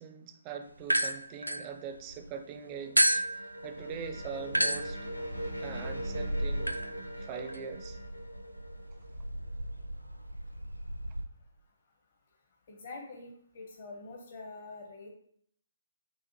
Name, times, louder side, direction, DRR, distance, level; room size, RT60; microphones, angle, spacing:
voice 1, 0.0-5.0 5.6-6.8 7.2-8.0, right 6 dB, 25° right, 7 dB, 0.4 m, -42 dB
sound 1, 0.8-2.3 3.0-11.2, right 1 dB, 90° right, 0.4 m, -33 dB
sound 2, 2.0-9.8, right 1 dB, 85° left, 0.6 m, -42 dB
voice 2, 12.7-15.1, left 3 dB, 40° left, 1 dB, 0.7 m, -45 dB
6.8 x 2.5 x 2.9 m, 0.66 s
figure-of-eight pair, 135°, 0 cm